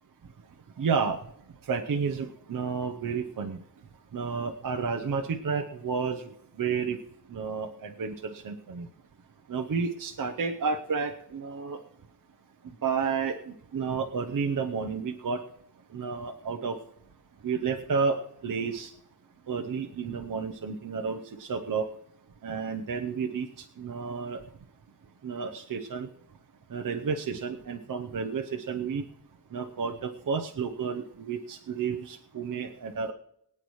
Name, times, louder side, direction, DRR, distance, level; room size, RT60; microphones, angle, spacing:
voice 1, 0.8-1.2 1.7-3.6 4.1-6.3 6.6-7.0 7.3-8.9 9.5-11.8 12.8-15.4 15.9-16.8 17.4-18.2 18.4-18.9 19.5-21.8 22.4-24.4 25.2-26.1 26.7-29.0 29.5-33.1, right 5 dB, 55° right, 3 dB, 0.8 m, -31 dB
23.5 x 8.7 x 3.2 m, 0.75 s
wide cardioid pair, 165°, 40 cm